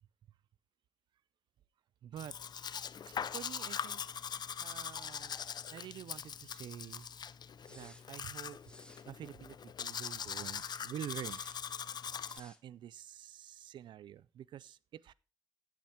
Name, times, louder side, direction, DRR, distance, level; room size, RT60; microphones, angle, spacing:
voice 1, 2.0-2.4 3.3-4.0 4.6-5.4 5.7-7.1 7.7-8.6 9.1-11.9 12.3-15.1, right 11 dB, 90° right, 0.4 m, -47 dB
Domestic sounds home sounds, 2.2-12.4, left 7 dB, 65° left, 0.5 m, -42 dB
sound 1, 7.6-8.1 8.6-9.1 11.1-11.6 12.1-12.6, left 1 dB, 10° left, 1.6 m, -57 dB
16.5 x 6.0 x 4.4 m
cardioid pair, 55°, 8 cm